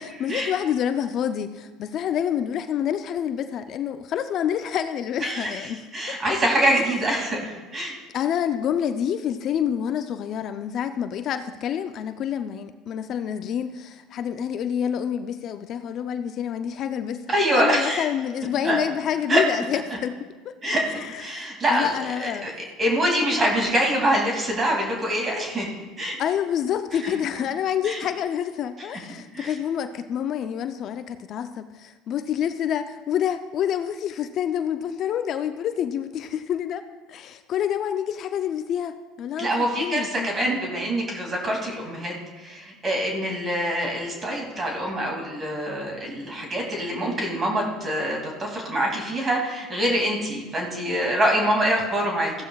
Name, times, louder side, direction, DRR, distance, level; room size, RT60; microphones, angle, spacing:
voice 1, 0.2-6.2 6.7-6.9 8.1-17.2 17.5-20.2 20.4-20.6 20.9-22.5 26.2-36.8 37.1-40.3, left 9 dB, 55° left, 9 dB, 0.5 m, -28 dB
voice 2, 5.2-8.0 17.3-18.1 18.6-18.8 19.3-19.4 20.6-20.9 21.2-21.9 22.2-22.5 22.8-26.2 26.9-27.0 27.8-28.0 28.8-28.9 29.3-29.5 39.4-52.3, right 1 dB, 30° right, 0 dB, 2.6 m, -25 dB
15.0 x 11.5 x 2.4 m, 1.3 s
hypercardioid pair, 80°, 0 cm